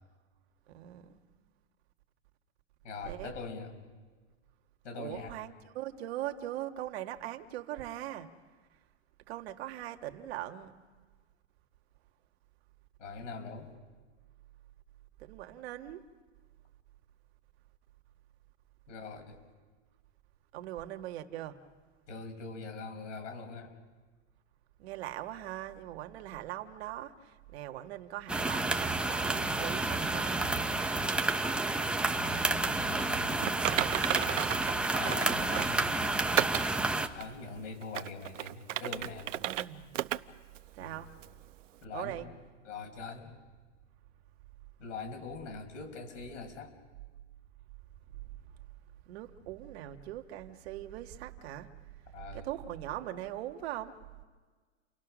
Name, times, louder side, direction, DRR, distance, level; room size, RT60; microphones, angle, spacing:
voice 1, 0.7-1.2 3.0-3.3 5.0-8.3 9.3-10.7 15.2-16.0 20.5-21.6 24.8-30.5 34.2-34.7 39.4-39.9 40.7-41.1 41.9-42.3 48.2-48.3 49.1-51.7 52.3-54.0, right 13 dB, 55° right, 1.8 m, -41 dB
voice 2, 2.8-3.8 4.8-5.4 13.0-13.7 18.9-19.4 22.1-23.7 32.1-33.5 34.9-36.0 36.5-36.6 37.1-39.3 40.8-41.0 41.8-42.2 42.6-43.3 44.8-46.7 52.1-52.5, left 4 dB, 75° left, 5.5 m, -43 dB
sound 1, 28.3-37.1, right 2 dB, 5° right, 0.7 m, -30 dB
Typing, 33.4-35.8 36.4-36.7 37.2-37.3 37.8-39.7 39.9-40.2 40.6-40.7 41.2-41.3, right 13 dB, 80° right, 0.9 m, -33 dB
29.5 x 23.0 x 6.3 m
supercardioid pair, 145°, 37 cm